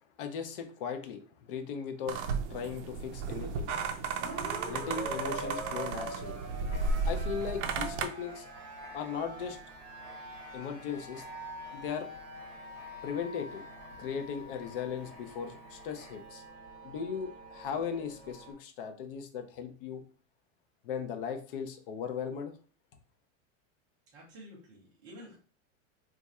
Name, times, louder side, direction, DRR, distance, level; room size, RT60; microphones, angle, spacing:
voice 1, 0.2-2.2 2.5-3.7 4.7-6.4 7.1-8.5 8.9-9.6 10.5-11.2 11.7-12.1 13.0-13.6 14.0-16.4 16.8-20.0 20.8-22.5, left 7 dB, 45° left, 6 dB, 0.5 m, -37 dB
sound 1, 2.1-8.1, right 4 dB, 60° right, 0.5 m, -34 dB
sound 2, 4.2-18.5, right 1 dB, 30° right, 0.8 m, -44 dB
Writing, 6.6-16.4, left 1 dB, 10° left, 0.8 m, -57 dB
voice 2, 24.1-25.4, equal, 10° right, -3 dB, 0.4 m, -50 dB
2.6 x 2.3 x 4.1 m, 0.39 s
supercardioid pair, 175°, 39 cm